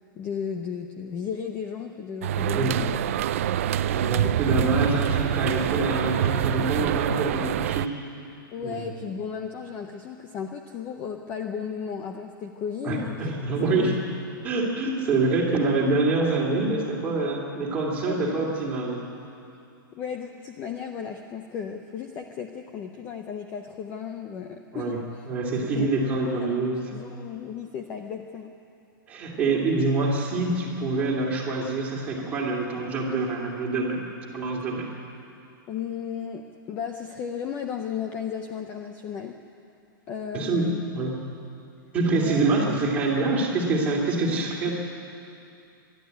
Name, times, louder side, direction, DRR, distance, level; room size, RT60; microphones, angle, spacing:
voice 1, 0.1-2.9 4.2-4.4 8.5-13.4 13.8-14.0 18.1-18.4 19.9-25.2 25.8-25.9 26.4-26.5 26.9-28.5 35.7-39.4 40.1-40.8 42.1-42.4 44.6-44.7, left 7 dB, 15° left, 5 dB, 0.6 m, -34 dB
sound 1, 2.2-7.9, right 11 dB, 40° right, 0.4 m, -26 dB
voice 2, 2.6-2.9 3.9-7.9 8.6-8.8 12.8-13.9 14.4-19.0 24.7-25.0 25.3-26.9 29.1-34.0 34.3-34.9 40.3-41.2 41.9-44.7, right 3 dB, 10° right, -3 dB, 2.7 m, -26 dB
24.5 x 12.0 x 9.2 m, 2.6 s
hypercardioid pair, 175°, 12 cm